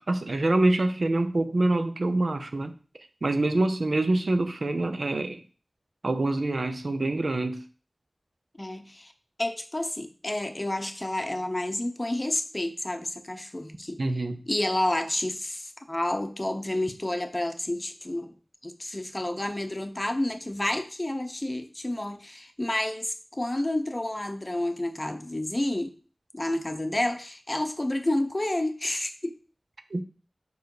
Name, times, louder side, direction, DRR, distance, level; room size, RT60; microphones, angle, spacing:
voice 1, 0.1-2.7 3.2-5.4 6.0-7.6 14.0-14.4 29.9-30.0, right 2 dB, 70° right, 0.6 m, -25 dB
voice 2, 8.6-9.1 9.4-14.0 14.5-18.3 18.6-26.0 26.3-29.4, left 1 dB, 30° left, 0.8 m, -30 dB
4.8 x 4.7 x 4.7 m
wide cardioid pair, 60°, 0 cm